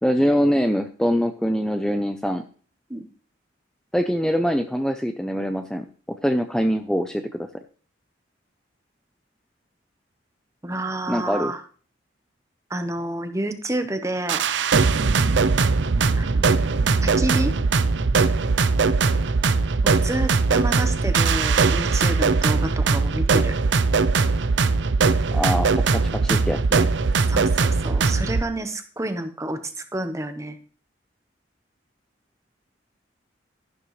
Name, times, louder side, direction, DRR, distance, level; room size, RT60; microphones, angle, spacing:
voice 1, 0.0-2.5 3.9-7.5 11.1-11.5 25.3-26.9, equal, 5° left, 6 dB, 0.5 m, -24 dB
voice 2, 10.6-11.6 12.7-14.5 16.2-16.7 17.0-17.6 19.8-23.6 27.3-30.6, right 1 dB, 15° right, 9 dB, 1.0 m, -29 dB
sound 1, 14.3-28.4, right 4 dB, 75° right, 0.6 m, -20 dB
12.5 x 11.5 x 3.2 m, 0.41 s
head